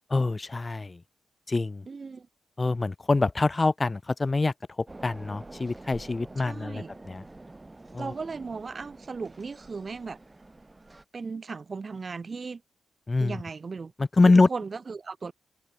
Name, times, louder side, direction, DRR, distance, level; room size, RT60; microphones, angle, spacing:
voice 1, 0.1-1.0 1.5-1.9 2.6-7.2 7.9-8.1 13.1-13.4 14.0-14.5, left 3 dB, 30° left, 0.7 m, -25 dB
voice 2, 1.9-2.3 6.4-6.9 8.0-10.2 11.1-12.6 13.2-13.9 14.2-15.3, right 4 dB, 45° right, 1.0 m, -36 dB
sound 1, 4.9-11.0, right 2 dB, 20° right, 4.8 m, -47 dB
cardioid pair, 75°, 0 cm